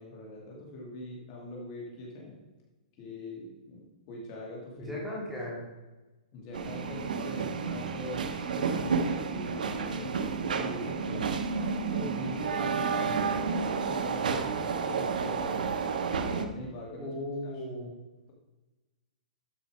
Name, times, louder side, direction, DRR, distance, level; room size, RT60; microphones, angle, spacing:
voice 1, 0.0-2.4 3.0-5.0 6.3-8.2 8.5-11.4 11.9-13.0 13.3-15.6 16.2-17.1 17.4-17.8, left 2 dB, 35° left, -2 dB, 2.4 m, -42 dB
voice 2, 4.8-5.6 12.6-13.1 16.9-17.9, left 1 dB, ahead, -6 dB, 2.9 m, -37 dB
sound 1, 6.5-16.5, right 5 dB, 85° right, 1.2 m, -31 dB
12.5 x 5.5 x 4.9 m, 1.1 s
hypercardioid pair, 160°, 4 cm